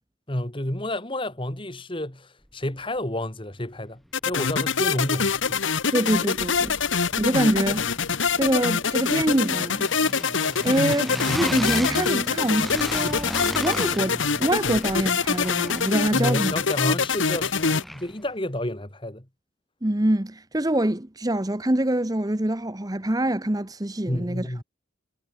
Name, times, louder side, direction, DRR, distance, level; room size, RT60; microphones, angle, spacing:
voice 1, 0.3-5.6 16.1-19.3 24.1-24.6, left 1 dB, 25° left, 2.4 m, -30 dB
sound 1, 4.1-17.8, left 5 dB, 80° left, 1.4 m, -25 dB
sound 2, 4.3-4.4 4.7-5.8 6.1-18.3, equal, ahead, 2.5 m, -36 dB
voice 2, 5.9-6.8 7.2-7.8 8.4-9.9 10.6-16.5 19.8-24.5, right 1 dB, 20° right, 1.0 m, -25 dB
head